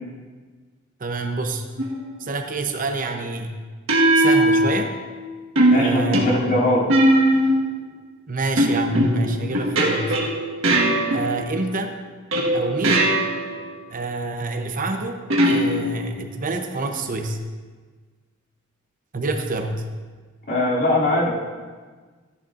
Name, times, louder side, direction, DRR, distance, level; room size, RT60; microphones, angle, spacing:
voice 1, 1.0-1.7 2.2-3.6 4.1-4.9 5.7-6.5 8.3-10.1 11.1-11.9 12.5-13.2 13.9-15.2 15.5-17.4 19.1-19.8, right 3 dB, 40° right, 5 dB, 0.7 m, -27 dB
sound 1, 1.8-2.1 3.9-5.1 5.6-7.7 8.6-11.6 12.3-13.6 15.3-16.2, right 1 dB, 75° right, 1.5 m, -20 dB
voice 2, 5.7-6.8 20.5-21.4, left 1 dB, 55° left, -6 dB, 2.8 m, -21 dB
14.0 x 10.5 x 2.5 m, 1.4 s
head